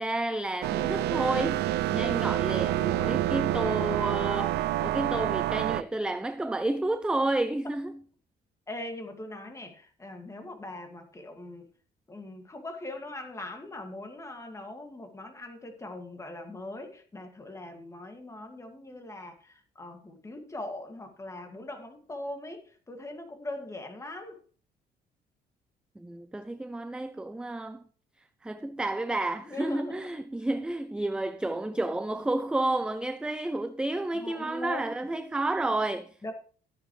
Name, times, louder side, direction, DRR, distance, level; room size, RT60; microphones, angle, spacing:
voice 1, 0.0-8.0 26.0-27.8 28.4-36.1, right 2 dB, 5° right, 0.5 m, -31 dB
sound 1, 0.6-5.8, right 14 dB, 80° right, 0.5 m, -28 dB
voice 2, 8.7-11.7 12.1-24.4 29.4-30.1 34.1-34.9 36.2-36.3, left 2 dB, 15° left, 2.2 m, -41 dB
14.0 x 9.5 x 3.2 m
cardioid pair, 135°, 17 cm